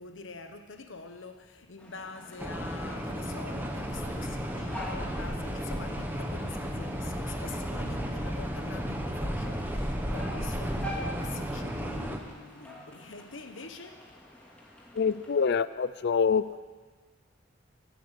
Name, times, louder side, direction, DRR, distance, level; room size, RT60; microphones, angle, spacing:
voice 1, 0.0-14.1, left 4 dB, 80° left, 1.0 m, -45 dB
sound 1, 1.8-15.5, equal, 5° left, 2.4 m, -47 dB
sound 2, 2.4-12.2, equal, 10° right, 1.2 m, -33 dB
voice 2, 14.9-16.6, left 6 dB, 60° left, 0.4 m, -26 dB
15.5 x 8.9 x 8.3 m
head